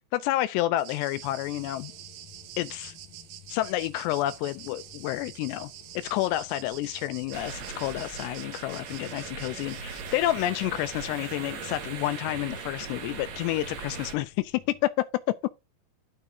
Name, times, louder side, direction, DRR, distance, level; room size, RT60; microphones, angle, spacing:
voice 1, 0.1-1.9 2.6-2.9 3.5-5.7 6.0-15.1 15.4-15.5, left 15 dB, 80° left, 2.6 m, -29 dB
sound 1, 0.8-11.7, right 12 dB, 75° right, 2.6 m, -47 dB
sound 2, 1.1-14.8, left 8 dB, 60° left, 2.0 m, -54 dB
sound 3, 7.3-14.2, right 6 dB, 55° right, 3.0 m, -39 dB
13.5 x 4.8 x 2.7 m
omnidirectional pair, 5.2 m